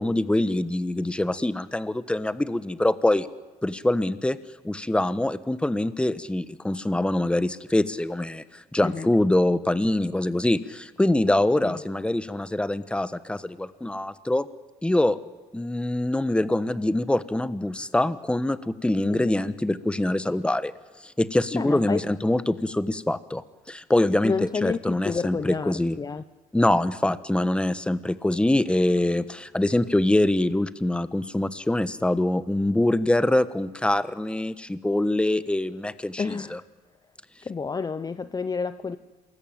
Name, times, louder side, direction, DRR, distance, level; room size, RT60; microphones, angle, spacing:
voice 1, 0.0-3.3 3.6-4.4 4.6-14.5 14.8-15.2 15.5-20.7 21.0-26.0 26.5-36.6, left 1 dB, 5° left, 14 dB, 1.2 m, -24 dB
voice 2, 8.8-9.1 11.6-11.8 19.1-19.4 21.5-22.0 24.2-26.2 36.2-36.6 37.4-39.0, left 5 dB, 25° left, 13 dB, 0.8 m, -30 dB
28.0 x 20.5 x 8.9 m, 1.2 s
cardioid pair, 110°, 17 cm